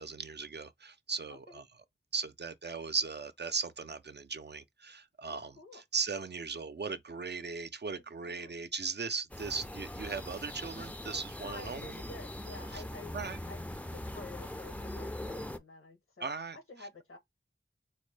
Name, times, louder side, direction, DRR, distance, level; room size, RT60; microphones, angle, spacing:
voice 1, 0.0-1.7 2.1-12.0 12.7-12.8 13.1-13.4 16.2-16.9, right 5 dB, 55° right, 0.4 m, -38 dB
voice 2, 1.3-1.6 5.3-5.8 7.9-8.5 11.4-13.2 13.5-13.6 13.9-16.3 16.5-17.2, left 3 dB, 80° left, 0.9 m, -50 dB
sound 1, 9.3-15.6, left 1 dB, 5° left, 0.4 m, -41 dB
4.1 x 2.1 x 3.2 m
wide cardioid pair, 50°, 21 cm